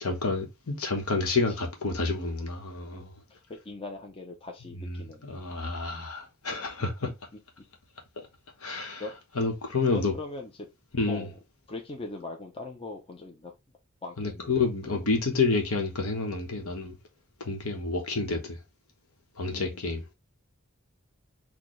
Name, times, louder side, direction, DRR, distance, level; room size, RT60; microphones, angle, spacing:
voice 1, 0.0-3.1 4.8-7.1 8.6-9.0 9.3-10.1 10.9-11.3 14.2-17.0 17.4-18.6 19.4-20.0, left 3 dB, 75° left, 1.1 m, -29 dB
voice 2, 3.5-5.3 9.0-9.1 9.9-10.7 11.1-11.4 11.7-13.5 14.0-14.7 17.7-17.9 19.5-19.9, left 3 dB, 25° left, 0.6 m, -40 dB
4.4 x 2.3 x 3.0 m
head